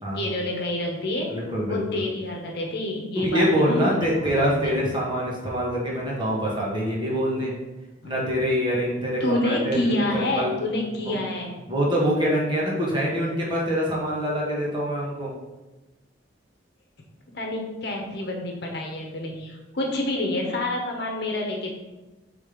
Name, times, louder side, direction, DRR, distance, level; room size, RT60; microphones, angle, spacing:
voice 1, 0.1-1.3 1.7-4.7 8.0-8.1 9.2-11.6 17.3-21.7, left 1 dB, 55° left, 0 dB, 1.1 m, -28 dB
voice 2, 1.3-2.0 3.2-7.5 8.0-9.8 10.1-10.5 11.0-11.2 11.7-15.3, equal, 25° right, -4 dB, 1.4 m, -25 dB
5.4 x 3.6 x 5.1 m, 1.1 s
head